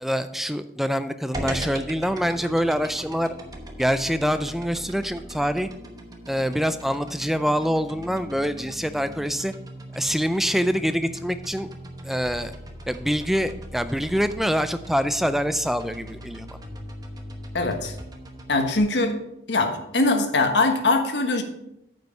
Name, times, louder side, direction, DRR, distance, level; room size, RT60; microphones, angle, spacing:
voice 1, 0.0-3.3 3.8-5.7 6.3-9.5 9.9-11.7 12.0-12.5 12.9-16.5, equal, ahead, 11 dB, 0.3 m, -25 dB
sound 1, 1.3-18.8, equal, 20° right, 0.9 m, -39 dB
voice 2, 17.5-17.9 18.5-19.2 19.5-21.4, left 2 dB, 80° left, 5 dB, 1.3 m, -22 dB
9.0 x 5.4 x 5.4 m, 0.83 s
head